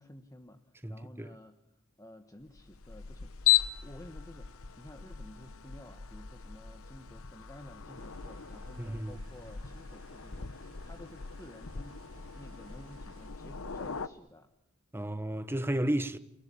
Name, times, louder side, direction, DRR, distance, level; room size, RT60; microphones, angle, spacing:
voice 1, 0.0-0.6 0.9-1.6 2.0-12.0 12.3-14.5 14.9-15.1, left 1 dB, 15° left, 1.3 m, -52 dB
voice 2, 0.8-1.3 8.8-9.2 14.9-16.2, right 1 dB, 10° right, 1.2 m, -33 dB
sound 1, 2.5-14.1, left 11 dB, 70° left, 1.0 m, -36 dB
sound 2, 7.9-13.3, right 1 dB, 65° right, 3.5 m, -57 dB
29.0 x 18.5 x 8.5 m
head